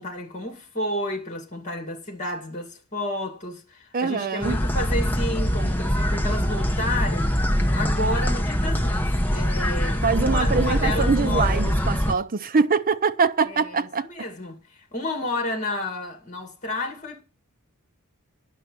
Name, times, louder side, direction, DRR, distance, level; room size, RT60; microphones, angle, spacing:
voice 1, 0.0-7.3 7.7-11.7 13.4-14.6 14.9-17.2, left 1 dB, 35° left, 2.3 m, -31 dB
voice 2, 3.9-4.6 10.0-14.1, right 5 dB, 40° right, 0.6 m, -23 dB
sound 1, 4.4-12.1, equal, 10° left, 1.2 m, -23 dB
11.0 x 5.4 x 8.3 m
head